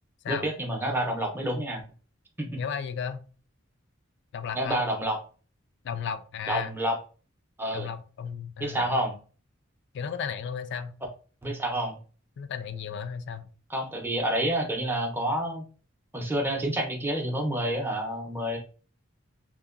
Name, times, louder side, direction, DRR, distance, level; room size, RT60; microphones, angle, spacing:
voice 1, 0.3-1.8 2.4-2.6 4.5-5.2 6.5-7.0 7.6-7.9 8.6-9.1 11.4-12.0 13.7-15.6 16.1-18.6, right 1 dB, 10° right, 1 dB, 0.6 m, -28 dB
voice 2, 2.6-3.2 4.3-4.8 5.8-6.7 7.7-9.0 9.9-11.0 12.4-13.5, left 7 dB, 60° left, 11 dB, 0.3 m, -34 dB
2.8 x 2.1 x 2.4 m, 0.38 s
head